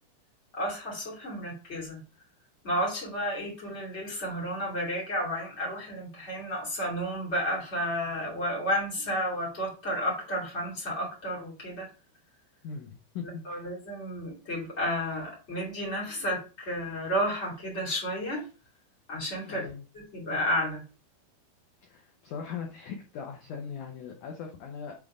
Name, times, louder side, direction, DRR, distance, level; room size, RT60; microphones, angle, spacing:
voice 1, 0.5-2.0 2.6-11.9 13.4-18.5 19.1-19.7 19.9-20.8, equal, 20° left, -2 dB, 2.1 m, -32 dB
voice 2, 12.6-13.6 19.5-19.8 21.8-24.9, left 6 dB, 90° left, 2 dB, 1.7 m, -40 dB
7.5 x 3.6 x 4.9 m, 0.34 s
omnidirectional pair, 4.9 m